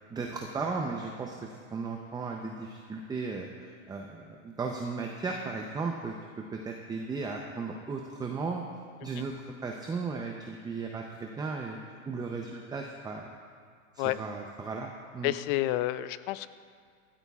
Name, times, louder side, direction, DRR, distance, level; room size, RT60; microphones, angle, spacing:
voice 1, 0.1-8.6 9.0-9.3 9.6-11.8 12.1-13.3 14.0-14.9 15.1-15.3, right 4 dB, 10° right, 1 dB, 0.6 m, -36 dB
voice 2, 15.2-16.5, left 16 dB, 40° left, 14 dB, 0.5 m, -29 dB
18.5 x 13.5 x 2.4 m, 2.1 s
hypercardioid pair, 120°, 41 cm